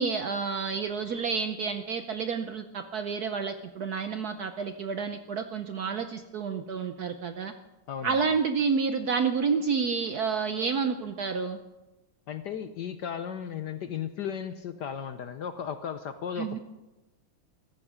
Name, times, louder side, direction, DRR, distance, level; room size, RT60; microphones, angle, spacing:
voice 1, 0.0-7.5 8.0-11.6 16.4-16.6, right 5 dB, 65° right, 8 dB, 1.0 m, -29 dB
voice 2, 12.3-16.6, left 8 dB, 65° left, 10 dB, 1.1 m, -35 dB
15.0 x 14.5 x 5.1 m, 1.0 s
omnidirectional pair, 2.4 m